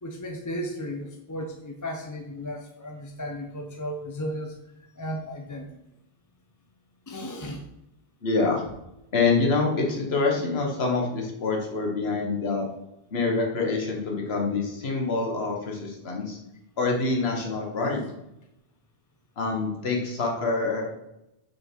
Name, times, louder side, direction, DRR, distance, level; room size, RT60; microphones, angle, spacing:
voice 1, 0.0-5.7 7.1-7.6, equal, 20° left, 2 dB, 0.6 m, -35 dB
voice 2, 8.2-8.6 9.1-12.7 13.1-16.4 16.8-18.0 19.4-20.9, left 3 dB, 80° left, 0 dB, 1.5 m, -26 dB
6.7 x 4.4 x 4.4 m, 0.87 s
omnidirectional pair, 1.1 m